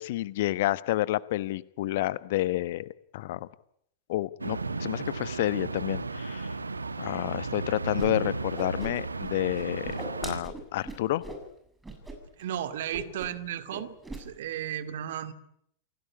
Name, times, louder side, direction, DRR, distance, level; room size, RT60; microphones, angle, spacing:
voice 1, 0.0-3.5 4.1-6.5 7.0-11.2, left 16 dB, 55° left, 18 dB, 1.0 m, -30 dB
sound 1, 4.4-10.4, right 3 dB, 80° right, 1.2 m, -34 dB
Whoosh swoosh swish, 8.0-8.1 8.4-9.3 9.5-11.4 11.8-12.1 12.4-12.6 12.9-13.4 13.7-14.2, right 2 dB, 10° right, 7.3 m, -40 dB
voice 2, 12.4-15.3, right 10 dB, 60° right, 10 dB, 2.2 m, -34 dB
28.5 x 17.5 x 9.9 m, 0.72 s
figure-of-eight pair, 90°, 0 cm